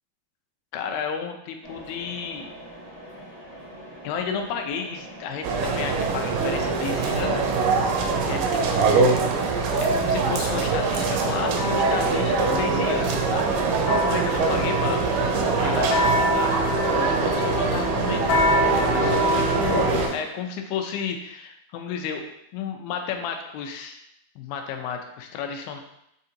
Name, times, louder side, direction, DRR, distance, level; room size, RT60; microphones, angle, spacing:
voice 1, 0.7-2.5 4.0-7.4 8.2-9.1 9.8-13.6 14.0-15.0 15.5-16.7 17.0-24.0 24.4-25.8, left 7 dB, 90° left, 4 dB, 2.3 m, -32 dB
Mechanisms, 1.6-20.1, equal, 60° right, 0.8 m, -40 dB
sound 1, 5.4-20.1, right 4 dB, 80° right, 2.1 m, -23 dB
sound 2, 11.6-20.0, equal, 70° left, 1.8 m, -26 dB
6.5 x 2.6 x 2.7 m, 0.78 s
omnidirectional pair, 4.0 m